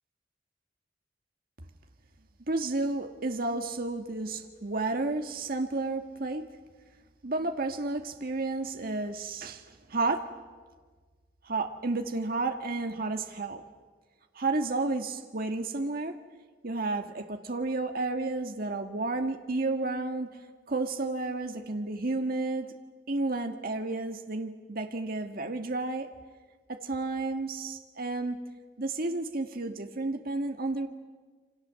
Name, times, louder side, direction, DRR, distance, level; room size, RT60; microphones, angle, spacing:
voice 1, 2.5-6.4 7.2-10.3 11.4-13.7 14.4-16.2 16.6-20.3 20.7-22.7 23.1-26.1 26.7-28.4 28.8-30.9, right 3 dB, 55° right, 5 dB, 1.8 m, -31 dB
28.5 x 25.5 x 7.6 m, 1.4 s
head